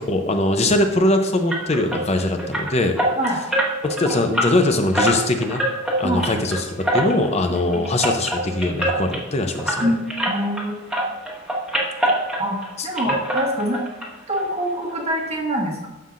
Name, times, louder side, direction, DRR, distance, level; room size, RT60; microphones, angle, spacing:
voice 1, 0.0-3.0 3.8-5.6 6.0-6.7 6.9-9.9 12.8-12.9, left 1 dB, 35° left, 5 dB, 0.7 m, -21 dB
sound 1, 1.5-10.7 10.9-12.7 13.0-14.1 14.3-14.5 14.9-15.0 15.3-15.4, right 1 dB, 5° right, 1.5 m, -25 dB
voice 2, 10.3-10.8 12.4-12.6 12.8-13.8 14.3-15.9, equal, 35° right, -2 dB, 1.3 m, -24 dB
13.0 x 5.7 x 2.6 m, 1.1 s
head